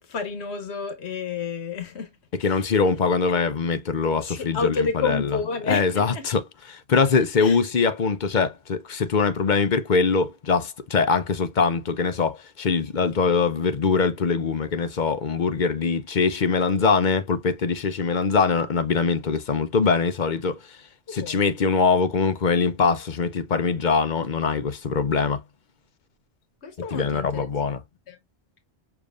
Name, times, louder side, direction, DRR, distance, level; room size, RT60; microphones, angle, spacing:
voice 1, 0.0-2.1 2.4-2.6 3.3-3.4 4.2-6.3 7.4-7.6 21.2-21.4 26.6-27.5 28.1-28.2, left 5 dB, 75° left, 1.5 m, -30 dB
voice 2, 2.4-5.4 5.7-6.4 6.7-20.6 21.1-25.4 26.9-27.8, left 5 dB, 50° left, 0.8 m, -23 dB
6.8 x 2.8 x 2.4 m
omnidirectional pair, 1.1 m